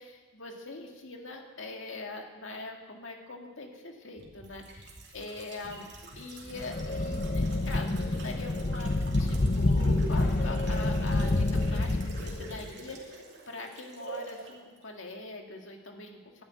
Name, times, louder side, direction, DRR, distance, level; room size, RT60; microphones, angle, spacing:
voice 1, 0.0-5.9 6.2-11.9 12.2-16.4, left 2 dB, 70° left, 2 dB, 2.0 m, -42 dB
sound 1, 4.2-14.5 14.8-14.9, right 1 dB, 55° right, 2.8 m, -45 dB
sound 2, 6.5-12.7, left 2 dB, 45° left, 0.7 m, -28 dB
11.5 x 9.9 x 9.4 m, 1.3 s
head